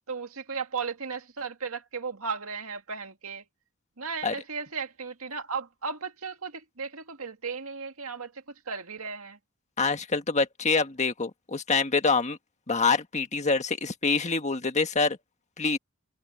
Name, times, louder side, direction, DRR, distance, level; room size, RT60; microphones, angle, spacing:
voice 1, 0.1-3.4 4.0-9.4, right 5 dB, 80° right, 2.1 m, -35 dB
voice 2, 9.8-12.4 12.7-15.2 15.6-15.8, left 4 dB, 35° left, 1.7 m, -26 dB
head